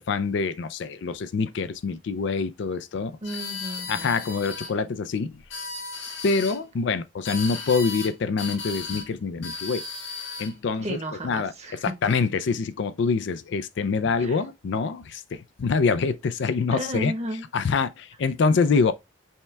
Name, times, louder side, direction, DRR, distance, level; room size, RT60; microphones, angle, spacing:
voice 1, 0.0-3.2 3.9-5.4 6.2-9.9 10.4-11.0 11.2-11.5 12.0-17.1 17.5-18.9, left 4 dB, 65° left, 0.4 m, -25 dB
sound 1, 3.2-4.7 5.4-6.6 7.2-8.1 8.4-9.1 9.4-10.5, left 4 dB, 85° left, 1.5 m, -35 dB
voice 2, 3.2-4.2 10.8-11.9 14.2-14.4 16.7-17.5, right 1 dB, 35° right, 1.1 m, -33 dB
5.5 x 2.2 x 3.3 m
head